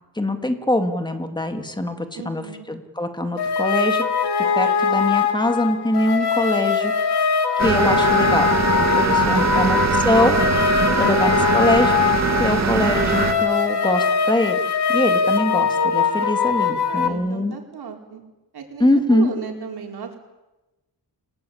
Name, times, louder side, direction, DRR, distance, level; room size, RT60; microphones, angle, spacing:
voice 1, 0.2-4.0 4.6-7.3 7.6-8.5 8.8-10.4 11.0-11.9 12.4-14.6 14.9-17.5 18.8-19.3, left 1 dB, 10° left, 6 dB, 2.3 m, -23 dB
voice 2, 2.2-2.7 8.9-9.8 16.9-18.2 18.5-20.2, right 6 dB, 70° right, 2 dB, 5.0 m, -35 dB
sound 1, 3.4-17.1, left 6 dB, 85° left, 2.5 m, -21 dB
sound 2, 7.6-13.3, right 5 dB, 45° right, 2.4 m, -22 dB
29.5 x 19.0 x 8.7 m, 1.0 s
wide cardioid pair, 155°, 39 cm